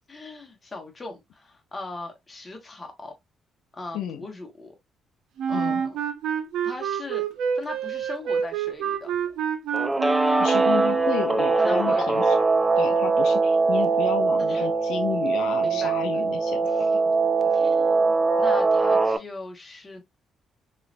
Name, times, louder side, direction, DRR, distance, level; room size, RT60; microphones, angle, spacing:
voice 1, 0.1-3.1 3.7-4.7 5.5-6.0 6.6-7.3 7.5-9.1 10.6-10.9 11.6-12.4 12.9-13.1 14.4-14.7 15.6-16.2 16.6-16.9 17.4-20.0, left 2 dB, 25° left, 1.3 m, -39 dB
Wind instrument woodwind instrument, 5.4-11.1, right 7 dB, 80° right, 0.5 m, -27 dB
voice 2, 5.5-5.8 10.4-12.4 12.8-16.9, left 9 dB, 85° left, 0.5 m, -32 dB
Guitar, 9.7-19.2, right 3 dB, 15° right, 0.4 m, -22 dB
3.1 x 2.9 x 2.5 m
cardioid pair, 90°, 0 cm